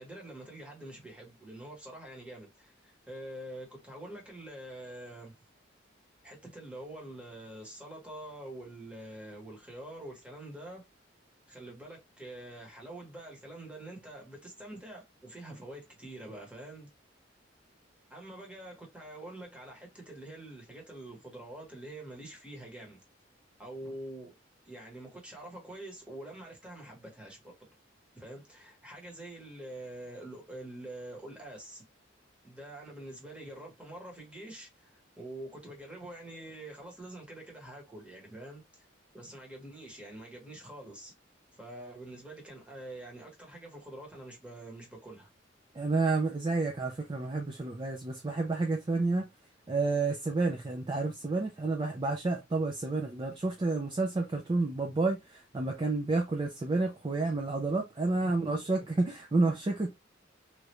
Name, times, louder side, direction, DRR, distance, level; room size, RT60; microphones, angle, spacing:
voice 1, 0.0-5.3 6.2-10.8 11.5-16.9 18.1-23.0 23.6-24.3 24.7-27.6 28.1-31.8 32.4-38.9 39.1-41.1 41.5-45.3 58.1-58.5, right 1 dB, 5° right, 1.1 m, -46 dB
voice 2, 45.7-49.3 49.7-59.9, right 3 dB, 25° right, 0.4 m, -30 dB
3.2 x 2.4 x 2.9 m
head